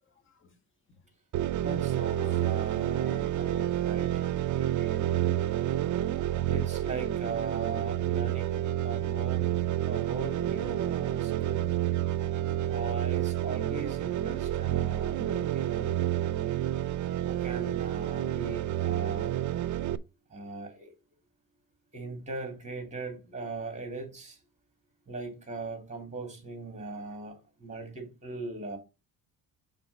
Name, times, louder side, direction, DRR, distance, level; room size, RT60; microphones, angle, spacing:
sound 1, 1.3-20.0, right 12 dB, 55° right, 0.5 m, -29 dB
voice 1, 1.6-4.2 5.8-9.6 9.9-11.8 12.7-16.0 17.2-19.4 20.3-20.9 21.9-24.4 25.1-28.8, right 3 dB, 20° right, 2.4 m, -39 dB
voice 2, 2.1-5.9, left 1 dB, 35° left, 1.7 m, -52 dB
5.8 x 3.9 x 5.3 m
cardioid pair, 105°, 36 cm